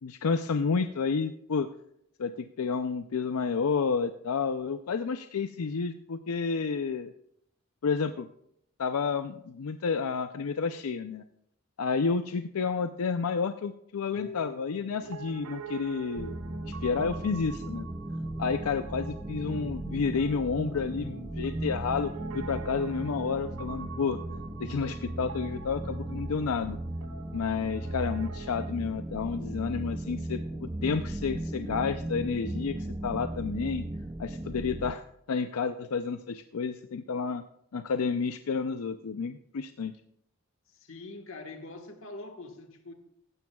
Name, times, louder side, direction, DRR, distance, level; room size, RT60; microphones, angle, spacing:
voice 1, 0.0-1.7 2.2-7.1 7.8-8.3 8.8-11.2 11.8-16.3 16.7-17.9 18.4-24.2 24.6-26.8 27.3-32.7 33.0-33.8 34.2-37.4 37.7-39.9, left 5 dB, 90° left, 9 dB, 0.5 m, -30 dB
Harp, 14.2-20.2, left 5 dB, 20° left, 2.6 m, -51 dB
Piano, 15.0-28.7, right 7 dB, 85° right, 0.7 m, -47 dB
sound 1, 16.2-34.9, right 1 dB, 15° right, 0.4 m, -37 dB
voice 2, 40.7-42.9, left 2 dB, 65° left, 5 dB, 1.5 m, -44 dB
16.0 x 12.0 x 2.3 m, 0.74 s
head